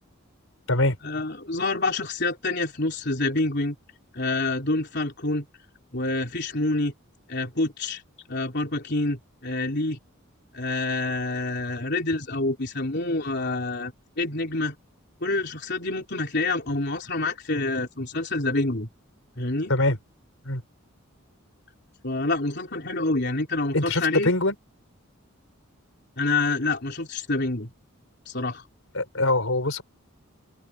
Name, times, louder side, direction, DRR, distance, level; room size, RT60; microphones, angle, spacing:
voice 1, 1.0-3.8 4.1-5.5 5.9-6.9 7.3-8.0 8.3-10.0 10.5-14.8 15.2-18.9 19.4-19.7 22.0-24.3 26.2-27.7 28.3-28.6, left 2 dB, 50° left, 3.8 m, -27 dB
voice 2, 23.7-24.5 28.9-29.8, left 2 dB, 70° left, 4.6 m, -23 dB
open air
head